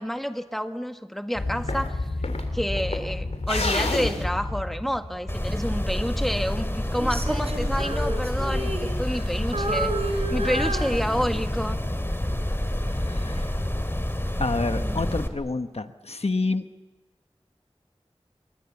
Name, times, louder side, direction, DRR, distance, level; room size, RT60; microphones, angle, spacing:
voice 1, 0.0-2.0 2.5-11.8 14.8-15.0, equal, ahead, 7 dB, 1.7 m, -29 dB
sound 1, 1.3-5.6, left 2 dB, 90° left, 3.1 m, -29 dB
sound 2, 5.3-15.3, left 1 dB, 20° left, 2.6 m, -28 dB
Female singing, 7.0-9.3 9.5-11.6 12.1-12.3, right 2 dB, 70° right, 4.4 m, -31 dB
voice 2, 12.9-13.6 14.4-16.6, left 3 dB, 70° left, 9 dB, 1.1 m, -28 dB
28.5 x 23.0 x 7.2 m, 1.1 s
wide cardioid pair, 40°, 11 cm